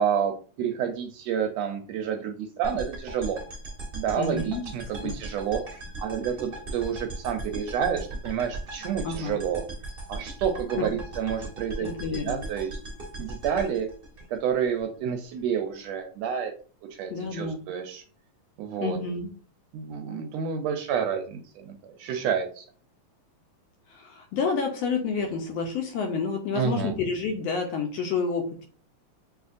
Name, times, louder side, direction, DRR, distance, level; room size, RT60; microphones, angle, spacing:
voice 1, 0.0-3.4 3.9-9.6 10.1-12.8 13.2-13.9 14.3-16.5 16.9-18.0 18.6-19.0 19.7-22.6 26.5-26.9, right 8 dB, 80° right, 5 dB, 1.6 m, -29 dB
sound 1, 2.6-14.8, right 2 dB, 50° right, 0.6 m, -38 dB
voice 2, 4.2-4.7 5.0-5.2 9.0-9.4 10.8-10.9 11.8-12.4 17.1-17.6 18.8-19.3 23.9-28.7, left 4 dB, 75° left, 2 dB, 1.6 m, -29 dB
6.2 x 2.8 x 2.5 m, 0.41 s
omnidirectional pair, 3.3 m